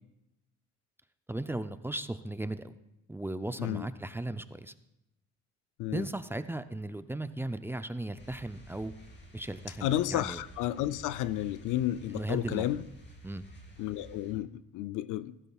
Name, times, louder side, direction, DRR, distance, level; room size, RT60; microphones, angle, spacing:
voice 1, 1.3-2.7 3.1-4.7 5.9-8.9 9.3-10.4 12.1-12.7 13.2-13.4, right 2 dB, 10° right, 0.4 m, -36 dB
sound 1, 8.2-14.3, equal, 35° left, 2.8 m, -51 dB
voice 2, 9.8-12.8 13.8-15.3, left 13 dB, 90° left, 0.5 m, -32 dB
14.5 x 12.5 x 2.3 m
cardioid pair, 90°, 30 cm